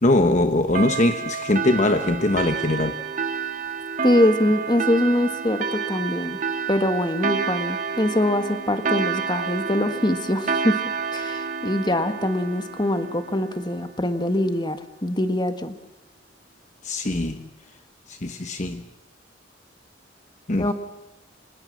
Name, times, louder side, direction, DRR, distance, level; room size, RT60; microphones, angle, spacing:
voice 1, 0.0-3.0 16.8-17.5 18.1-18.8 20.5-20.7, left 2 dB, 40° left, 8 dB, 1.1 m, -22 dB
sound 1, 0.7-13.8, right 5 dB, 40° right, 1.8 m, -29 dB
voice 2, 4.0-6.4 6.7-10.8 11.1-15.8 20.6-20.7, left 1 dB, 25° left, 9 dB, 1.5 m, -23 dB
26.0 x 20.0 x 7.6 m, 0.94 s
head